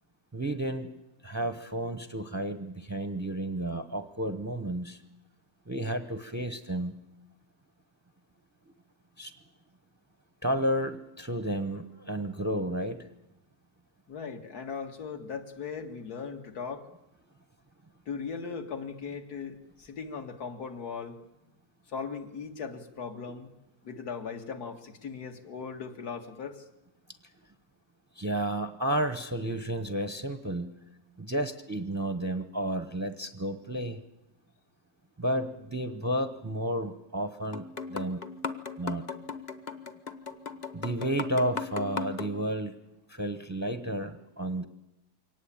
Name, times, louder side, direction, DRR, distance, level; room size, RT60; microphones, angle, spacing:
voice 1, 0.3-0.9 1.2-5.0 5.7-7.0 9.2-9.3 10.4-13.1 28.1-30.7 31.2-34.0 35.2-38.2 38.8-39.1 40.7-42.8 43.1-44.6, right 1 dB, 15° right, 9 dB, 0.6 m, -32 dB
voice 2, 14.1-16.9 18.1-21.2 21.9-23.5 23.8-26.6, left 5 dB, 75° left, 5 dB, 2.4 m, -38 dB
sound 1, 37.5-42.3, left 5 dB, 35° left, 0.9 m, -37 dB
23.5 x 18.5 x 8.7 m, 0.88 s
omnidirectional pair, 1.7 m